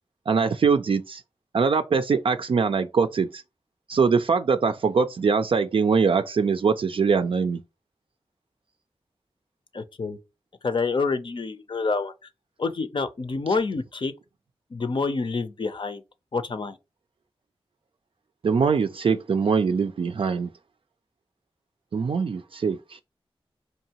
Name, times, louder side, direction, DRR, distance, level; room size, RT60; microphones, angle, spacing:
voice 1, 0.3-1.2 1.5-3.4 3.9-7.6 18.4-20.5 21.9-23.0, right 5 dB, 60° right, 0.4 m, -22 dB
voice 2, 9.7-10.2 10.6-12.1 12.6-14.1 14.7-16.0 16.3-16.8, left 4 dB, 55° left, 0.6 m, -27 dB
4.5 x 2.7 x 2.9 m
cardioid pair, 50°, 10 cm